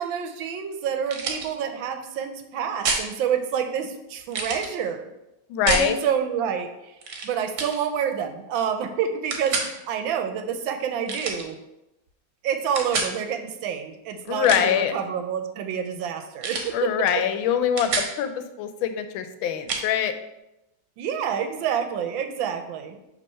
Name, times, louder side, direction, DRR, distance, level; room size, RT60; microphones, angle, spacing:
voice 1, 0.0-5.1 5.6-6.7 7.2-11.6 12.4-17.1 21.0-23.0, right 8 dB, 80° right, 7 dB, 1.4 m, -28 dB
sound 1, 1.1-1.5 2.8-3.1 4.3-4.7 5.7-5.9 7.0-7.3 7.6-7.8 9.3-9.7 11.1-11.5 12.8-13.1 14.3-14.8 16.4-16.7 17.1-17.2 17.5-18.1 19.7-19.9, right 4 dB, 65° right, 1.5 m, -28 dB
voice 2, 5.5-5.9 14.3-14.9 16.7-20.1, left 9 dB, 85° left, 9 dB, 1.4 m, -24 dB
5.3 x 3.4 x 5.5 m, 0.90 s
omnidirectional pair, 2.1 m